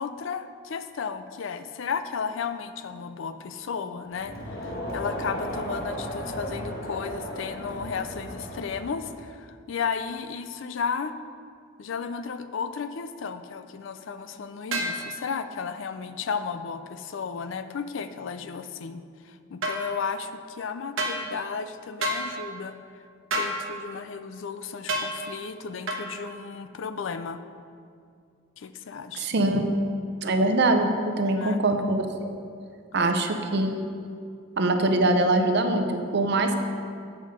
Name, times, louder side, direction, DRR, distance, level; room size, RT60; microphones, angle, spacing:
voice 1, 0.0-11.1 11.8-22.8 23.4-27.4 28.6-29.3 31.3-31.6 32.9-33.1, left 6 dB, 65° left, 10 dB, 0.4 m, -34 dB
Crowd, 4.1-9.3, left 1 dB, 50° left, 1.2 m, -35 dB
sound 1, 14.7-15.0 19.6-19.8 21.0-21.2 22.0-22.2 23.3-23.6 24.9-25.1 25.9-26.0, right 1 dB, 70° right, 1.0 m, -27 dB
voice 2, 29.1-29.7 30.2-32.3 32.9-33.9 34.6-36.6, right 2 dB, 55° right, 6 dB, 0.6 m, -23 dB
8.2 x 5.6 x 4.9 m, 2.3 s
head